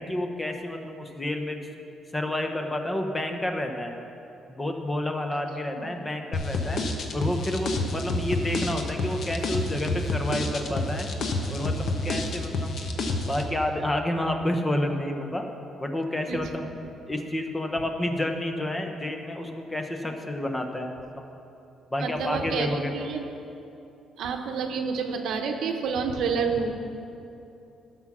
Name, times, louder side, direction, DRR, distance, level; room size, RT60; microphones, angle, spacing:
voice 1, 0.0-1.6 2.1-4.0 4.5-6.8 7.1-11.1 11.5-12.7 13.3-15.4 15.8-16.7 17.1-21.2 21.9-23.1, left 1 dB, 15° left, 4 dB, 1.0 m, -29 dB
sound 1, 6.3-13.4, left 2 dB, 60° left, 1.0 m, -29 dB
voice 2, 22.0-23.2 24.2-26.7, right 5 dB, 75° right, 5 dB, 0.9 m, -29 dB
11.5 x 6.1 x 6.1 m, 2.8 s
cardioid pair, 100°, 0 cm